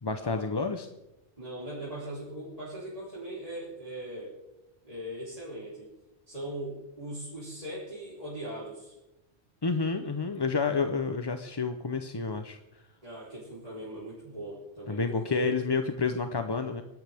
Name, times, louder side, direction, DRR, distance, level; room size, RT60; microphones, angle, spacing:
voice 1, 0.0-0.9 9.6-12.6 14.9-16.8, left 4 dB, 25° left, 7 dB, 0.6 m, -29 dB
voice 2, 1.4-4.3 4.8-5.9 6.3-9.0 13.0-15.5, right 1 dB, 35° right, -9 dB, 4.0 m, -39 dB
26.5 x 12.0 x 3.5 m, 0.98 s
omnidirectional pair, 1.2 m